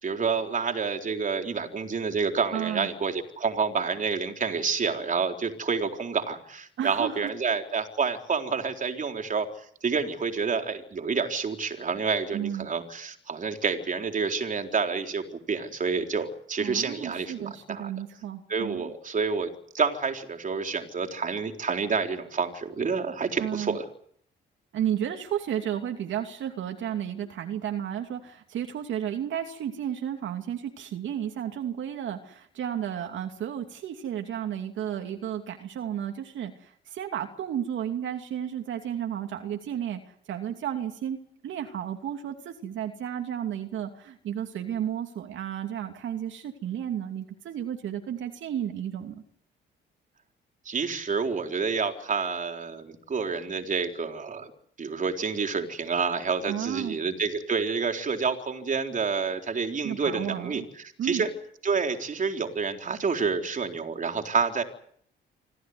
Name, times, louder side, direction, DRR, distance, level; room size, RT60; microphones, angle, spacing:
voice 1, 0.0-9.5 9.8-17.9 18.5-23.8 50.7-54.5 54.8-61.3 61.6-64.6, right 5 dB, 40° right, 5 dB, 4.1 m, -28 dB
voice 2, 2.5-2.9 6.8-7.3 12.3-12.7 16.6-18.9 23.4-23.8 24.7-40.0 40.3-41.2 41.4-49.2 56.5-57.0 59.8-60.6 61.0-61.3, right 10 dB, 75° right, 4 dB, 2.8 m, -32 dB
26.5 x 15.5 x 9.6 m, 0.63 s
cardioid pair, 90°, 20 cm